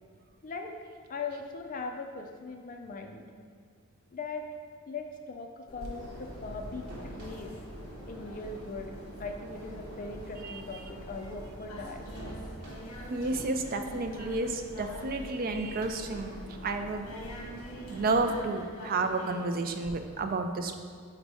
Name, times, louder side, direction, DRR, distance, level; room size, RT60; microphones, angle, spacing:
voice 1, 1.1-3.2 4.1-4.4 4.9-7.5 8.1-12.0, left 3 dB, 35° left, 4 dB, 0.4 m, -40 dB
sound 1, 5.7-19.9, equal, 65° left, 0.9 m, -47 dB
sound 2, 5.9-18.4, equal, 80° right, 1.2 m, -45 dB
voice 2, 13.1-17.1 17.9-20.7, right 3 dB, 40° right, 6 dB, 0.4 m, -31 dB
5.1 x 4.1 x 4.7 m, 2.1 s
head